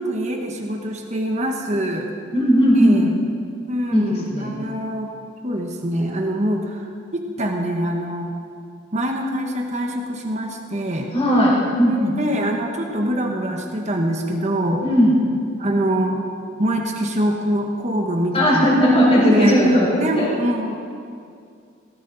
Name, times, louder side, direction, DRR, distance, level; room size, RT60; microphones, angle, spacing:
voice 1, 0.0-2.1 2.7-3.1 3.7-5.1 5.4-8.3 8.9-11.1 11.9-14.9 15.6-16.2 16.6-18.8 19.2-19.6 20.0-20.8, right 1 dB, 35° right, 2 dB, 1.4 m, -24 dB
voice 2, 2.3-3.0 3.9-4.0 4.3-4.5 11.1-12.1 14.8-15.2 18.3-19.9 20.2-20.3, equal, 30° left, -5 dB, 4.6 m, -16 dB
19.0 x 16.5 x 4.2 m, 2.3 s
head